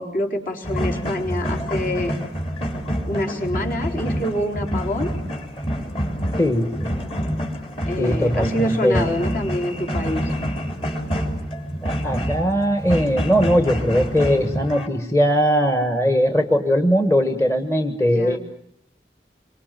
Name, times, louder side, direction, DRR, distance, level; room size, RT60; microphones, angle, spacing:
voice 1, 0.0-2.1 3.1-5.1 7.8-10.3 18.0-18.4, left 1 dB, 50° left, 4 dB, 4.3 m, -26 dB
sound 1, 0.6-14.9, equal, 35° left, 3.8 m, -27 dB
voice 2, 6.4-6.9 8.0-9.0 11.8-18.4, equal, 15° left, 7 dB, 1.5 m, -20 dB
27.0 x 24.5 x 7.7 m, 0.70 s
head